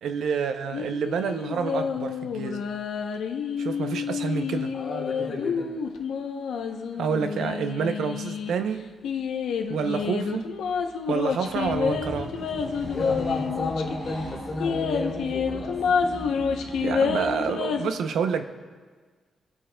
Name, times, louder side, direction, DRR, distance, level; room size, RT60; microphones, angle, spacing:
voice 1, 0.0-2.7 3.6-4.7 7.0-8.9 9.7-10.5 11.1-12.3 16.8-18.4, right 6 dB, 80° right, 8 dB, 0.6 m, -28 dB
sound 1, 0.7-8.5 9.0-14.0 14.2-14.3 14.6-17.9, left 6 dB, 90° left, 0.7 m, -29 dB
voice 2, 4.7-5.7 12.9-15.7, left 2 dB, 25° left, -8 dB, 2.8 m, -32 dB
sound 2, 11.4-17.6, equal, 55° right, 3.0 m, -38 dB
20.5 x 8.6 x 2.2 m, 1.5 s
wide cardioid pair, 170°, 0 cm